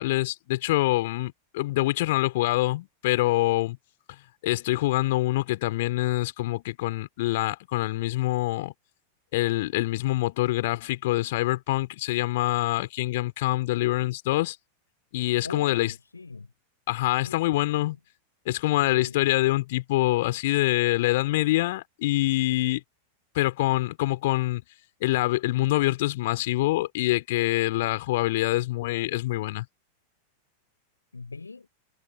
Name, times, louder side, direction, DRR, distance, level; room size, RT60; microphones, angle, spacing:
voice 1, 0.0-3.8 4.4-8.7 9.3-14.6 15.1-15.9 16.9-18.0 18.5-22.8 23.3-24.6 25.0-29.7, left 18 dB, 50° left, 4.0 m, -25 dB
voice 2, 15.4-16.5 17.2-18.0 18.7-19.2 31.1-31.7, left 4 dB, 80° left, 6.8 m, -41 dB
figure-of-eight pair, 90°, 0 cm